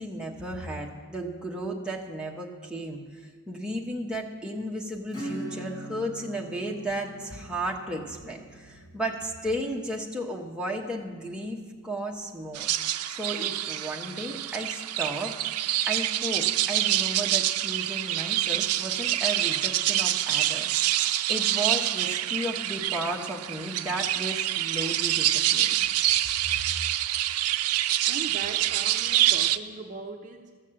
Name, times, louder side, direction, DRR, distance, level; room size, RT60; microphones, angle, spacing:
voice 1, 0.0-3.0 3.5-12.7 13.0-15.3 15.9-20.7 21.3-25.7 26.5-26.6, right 1 dB, 5° right, -1 dB, 1.0 m, -34 dB
Acoustic guitar / Strum, 5.1-11.3, right 1 dB, 20° left, 2.1 m, -42 dB
sound 1, 12.5-29.6, right 13 dB, 85° right, 0.4 m, -26 dB
voice 2, 28.0-30.6, right 3 dB, 35° right, 2 dB, 0.6 m, -39 dB
13.5 x 6.4 x 7.5 m, 1.5 s
head